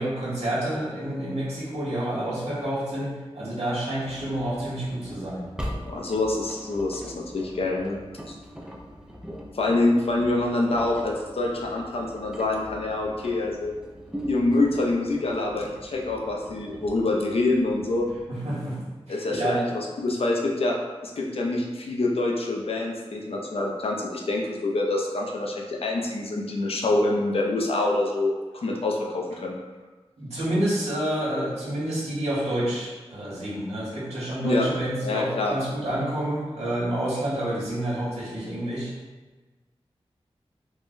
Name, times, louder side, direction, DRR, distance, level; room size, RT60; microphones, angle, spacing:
voice 1, 0.0-5.5 18.3-18.8 19.1-19.6 30.2-38.9, right 1 dB, 90° right, -8 dB, 1.2 m, -29 dB
Engine, 4.0-18.2, equal, 5° right, 0.4 m, -41 dB
voice 2, 5.8-8.0 9.5-13.7 14.3-18.1 19.1-20.8 21.2-29.6 34.4-34.7 35.0-35.5, left 2 dB, 65° left, 0 dB, 0.5 m, -26 dB
3.6 x 2.1 x 2.5 m, 1.3 s
wide cardioid pair, 90°, 11 cm